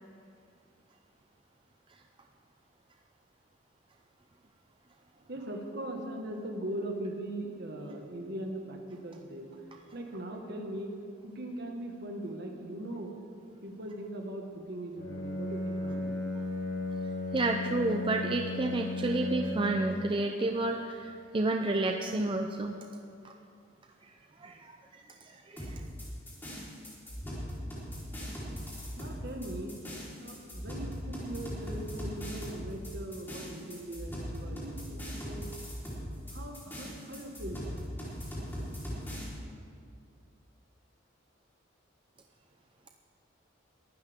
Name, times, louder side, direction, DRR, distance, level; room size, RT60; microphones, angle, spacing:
voice 1, 5.2-9.6 9.9-10.9 11.2-13.2 13.6-16.2 29.0-29.8 30.2-35.5 36.1-37.6, right 1 dB, 55° right, 2 dB, 1.7 m, -40 dB
Bowed string instrument, 14.9-20.0, left 2 dB, 55° left, 4.1 m, -35 dB
voice 2, 17.3-22.7 23.2-23.3 24.4-25.8, right 2 dB, 25° right, 3 dB, 0.5 m, -31 dB
sound 1, 25.6-39.3, equal, 10° left, 4.0 m, -40 dB
22.5 x 12.5 x 3.6 m, 2.5 s
head